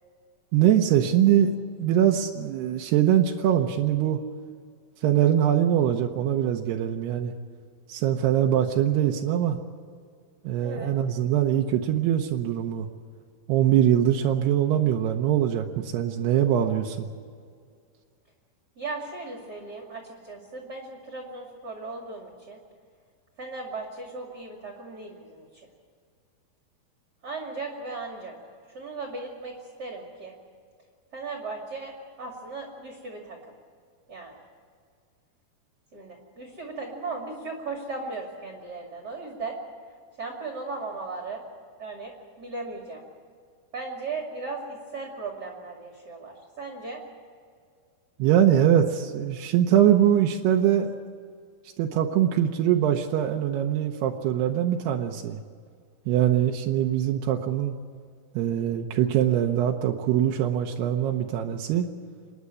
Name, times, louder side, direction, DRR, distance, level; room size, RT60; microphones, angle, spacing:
voice 1, 0.5-4.2 5.0-7.3 7.9-9.6 10.4-12.9 13.5-17.1 48.2-50.9 51.8-55.4 56.1-57.8 58.3-61.9, right 10 dB, 85° right, 2 dB, 3.0 m, -23 dB
voice 2, 10.6-10.9 18.8-22.6 23.4-25.7 27.2-28.4 28.7-30.3 31.1-33.5 34.1-34.4 35.9-39.6 40.2-41.4 41.8-43.0 43.7-47.0, right 3 dB, 30° right, 1 dB, 2.3 m, -37 dB
26.0 x 10.5 x 9.6 m, 2.1 s
omnidirectional pair, 4.6 m